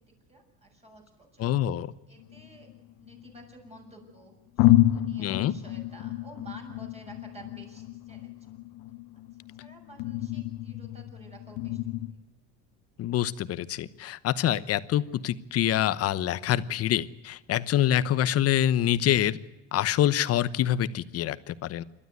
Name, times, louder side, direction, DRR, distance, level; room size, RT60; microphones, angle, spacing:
voice 1, 0.3-1.4 2.1-2.7 3.0-8.3 9.6-12.0, right 2 dB, 20° right, 1 dB, 7.0 m, -51 dB
voice 2, 1.4-1.9 5.2-5.5 13.0-19.4 19.7-21.8, left 12 dB, 45° left, 15 dB, 1.0 m, -26 dB
sound 1, 2.2-3.5 4.1-4.2 4.6-12.1, left 15 dB, 75° left, 1.2 m, -29 dB
27.0 x 12.5 x 9.5 m, 1.1 s
supercardioid pair, 115°, 32 cm